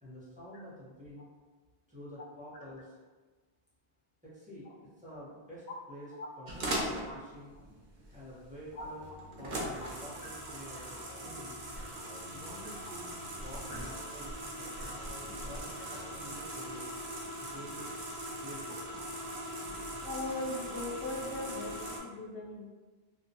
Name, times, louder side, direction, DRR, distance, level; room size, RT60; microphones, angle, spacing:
voice 1, 0.0-1.3 1.9-2.9 4.2-7.5 8.1-9.0 9.3-11.6 12.3-14.9 15.4-16.9 17.4-18.0 18.3-18.9, equal, 10° right, -10 dB, 0.7 m, -49 dB
sound 1, 6.5-22.0, right 1 dB, 55° right, 0.6 m, -40 dB
voice 2, 8.8-9.2 9.8-9.9 10.2-10.3 13.7-13.8 20.0-22.7, left 2 dB, 85° left, -2 dB, 0.8 m, -40 dB
sound 2, 9.0-16.2, left 1 dB, 55° left, 0.6 m, -49 dB
2.7 x 2.2 x 2.6 m, 1.3 s
omnidirectional pair, 1.0 m